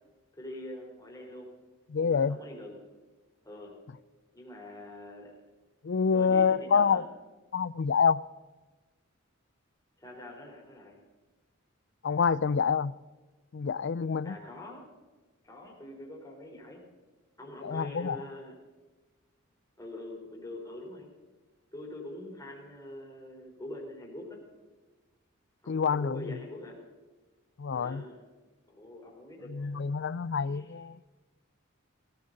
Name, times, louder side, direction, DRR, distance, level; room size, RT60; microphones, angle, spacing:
voice 1, 0.4-1.5 2.0-2.8 3.4-3.8 4.3-5.4 6.1-7.1 10.0-11.0 14.2-14.9 15.4-16.8 17.4-18.6 19.8-21.1 21.7-24.5 25.6-26.8 27.7-28.2 28.7-29.9 30.4-30.8, left 1 dB, 15° left, 3.7 m, -44 dB
voice 2, 1.9-2.4 5.8-7.0 7.5-8.2 12.0-12.9 13.5-14.3 17.6-18.2 25.7-26.4 27.6-28.0 29.5-30.9, left 6 dB, 55° left, 0.4 m, -27 dB
18.0 x 15.0 x 3.9 m
head